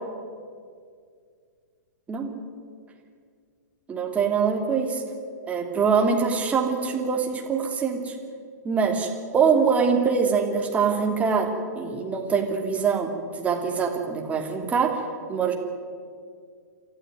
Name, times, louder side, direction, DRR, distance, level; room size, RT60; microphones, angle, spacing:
voice 1, 3.9-5.0 5.5-8.1 8.6-15.0 15.3-15.5, right 5 dB, 15° right, 2 dB, 3.1 m, -24 dB
28.0 x 14.0 x 9.5 m, 2.2 s
figure-of-eight pair, 110°, 10 cm